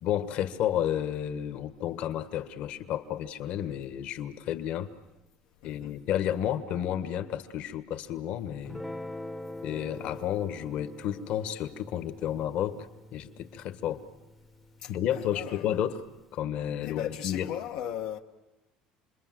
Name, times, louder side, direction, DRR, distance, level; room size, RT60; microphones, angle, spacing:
voice 1, 0.0-4.9 5.6-8.8 9.6-12.9 13.1-14.0 14.9-16.0 16.3-17.5, left 10 dB, 55° left, 1.5 m, -31 dB
voice 2, 5.6-5.9 14.8-15.7 16.8-18.2, left 10 dB, 80° left, 1.2 m, -37 dB
Guitar, 8.6-15.2, left 1 dB, ahead, 0.8 m, -44 dB
27.5 x 22.0 x 7.7 m
cardioid pair, 160°, 2 cm